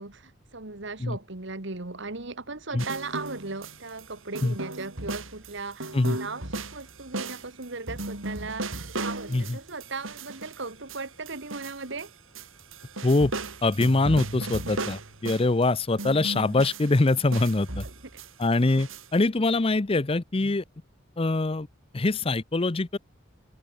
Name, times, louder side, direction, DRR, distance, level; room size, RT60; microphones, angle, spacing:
voice 1, 0.0-12.1 17.8-17.9, right 3 dB, 60° right, 2.1 m, -37 dB
sound 1, 2.8-4.1 4.3-12.1 12.3-15.6 16.0-19.1, right 2 dB, 75° right, 5.2 m, -36 dB
voice 2, 13.6-17.8 18.4-20.6 21.2-21.7 21.9-23.0, left 2 dB, 30° left, 0.6 m, -24 dB
open air
head